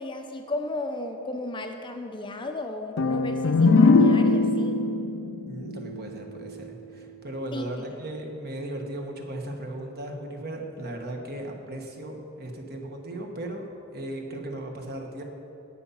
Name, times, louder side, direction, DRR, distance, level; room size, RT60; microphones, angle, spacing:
voice 1, 0.0-4.8 7.5-7.7, left 2 dB, 20° left, 5 dB, 0.6 m, -34 dB
sound 1, 3.0-6.6, left 3 dB, 65° left, 0.5 m, -21 dB
voice 2, 5.5-13.7 13.9-15.2, right 1 dB, 45° right, 2 dB, 1.4 m, -36 dB
17.0 x 5.7 x 5.7 m, 2.9 s
head